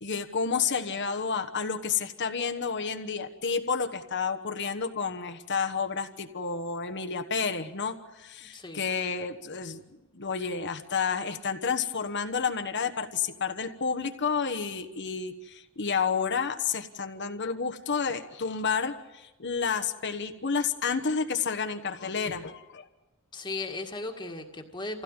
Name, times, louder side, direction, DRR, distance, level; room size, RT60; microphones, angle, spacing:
voice 1, 0.0-9.8 10.1-22.9, left 5 dB, 55° left, 7 dB, 1.3 m, -30 dB
voice 2, 23.3-25.0, left 3 dB, 20° left, 3 dB, 1.9 m, -36 dB
26.5 x 16.5 x 9.0 m, 1.0 s
head